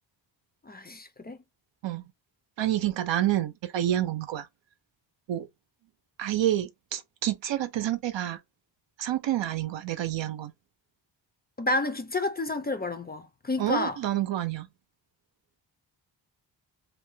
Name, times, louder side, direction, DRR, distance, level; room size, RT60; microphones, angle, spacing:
voice 1, 0.6-1.4 11.6-14.0, left 2 dB, 20° left, 0.4 m, -30 dB
voice 2, 2.6-4.5 5.3-5.5 6.2-8.4 9.0-10.5 13.6-14.7, right 12 dB, 75° right, 0.6 m, -28 dB
2.7 x 2.2 x 3.2 m
wide cardioid pair, 105°, 45 cm